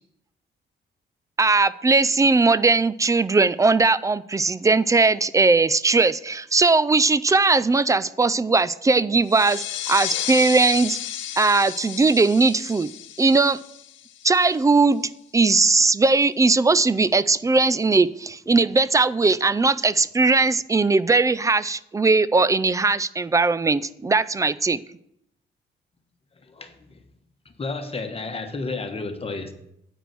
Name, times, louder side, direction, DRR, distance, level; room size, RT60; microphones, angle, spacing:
voice 1, 1.4-11.0 11.4-12.9 13.2-13.6 14.2-24.8, right 3 dB, 15° right, 17 dB, 0.3 m, -19 dB
sound 1, 9.3-14.6, left 12 dB, 75° left, 0.7 m, -33 dB
voice 2, 26.5-27.0 27.6-29.5, left 3 dB, 30° left, 6 dB, 1.2 m, -32 dB
9.2 x 5.0 x 6.1 m, 0.77 s
cardioid pair, 90°, 20 cm